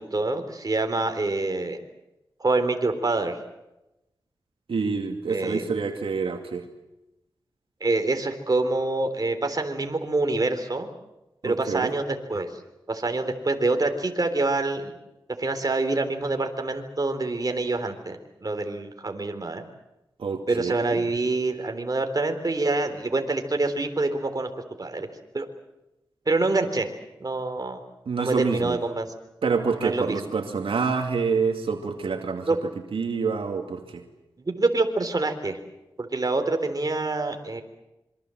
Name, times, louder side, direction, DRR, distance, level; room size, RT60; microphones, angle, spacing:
voice 1, 0.0-1.8 2.4-3.4 5.3-5.6 7.8-10.9 11.4-12.5 12.9-14.9 15.4-19.6 20.5-24.5 24.8-25.1 25.3-25.5 26.3-26.9 27.2-27.8 28.2-29.1 29.8-30.2 32.5-32.6 34.4-35.6 36.0-37.6, right 2 dB, 45° right, 6 dB, 3.7 m, -26 dB
voice 2, 4.7-6.6 11.4-11.9 20.2-21.1 28.1-28.8 29.4-34.0, right 5 dB, 85° right, 4 dB, 2.4 m, -27 dB
26.5 x 24.0 x 7.8 m, 0.94 s
wide cardioid pair, 65°, 9 cm